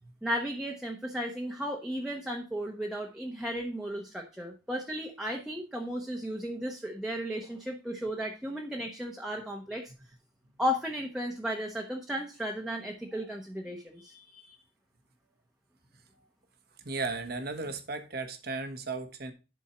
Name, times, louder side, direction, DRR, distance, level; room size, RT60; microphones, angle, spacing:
voice 1, 0.2-9.9 10.6-14.6, equal, 5° right, 1.1 m, -35 dB
voice 2, 16.8-19.3, right 3 dB, 60° right, 1.3 m, -35 dB
11.5 x 4.6 x 4.3 m
head